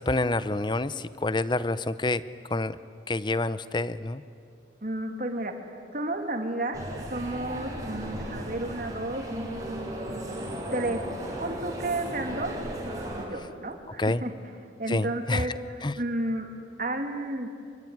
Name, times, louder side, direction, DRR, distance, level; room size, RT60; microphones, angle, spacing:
voice 1, 0.0-2.2 2.5-2.8 3.1-4.2 14.0-14.2 14.9-15.5 15.8-15.9, left 2 dB, 25° left, 15 dB, 0.6 m, -27 dB
voice 2, 4.8-9.2 10.0-10.2 10.7-11.0 11.4-12.5 13.1-14.3 14.8-15.5 16.0-16.5 16.8-17.5, right 1 dB, 45° right, 4 dB, 2.7 m, -32 dB
sound 1, 6.7-13.3, right 1 dB, 20° right, 4.5 m, -36 dB
25.5 x 23.0 x 9.7 m, 2.4 s
head